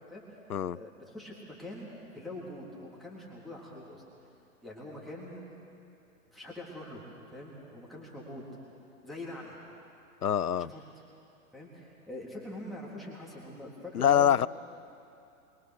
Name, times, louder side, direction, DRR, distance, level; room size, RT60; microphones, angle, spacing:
voice 1, 0.7-1.9 2.1-4.0 4.6-5.5 6.3-7.0 7.3-8.4 9.0-9.6 10.6-10.8 11.5-14.5, left 1 dB, ahead, -4 dB, 3.6 m, -44 dB
voice 2, 10.2-10.7 13.9-14.5, left 9 dB, 85° left, 20 dB, 0.6 m, -24 dB
26.5 x 23.0 x 6.7 m, 2.7 s
figure-of-eight pair, 115°, 44 cm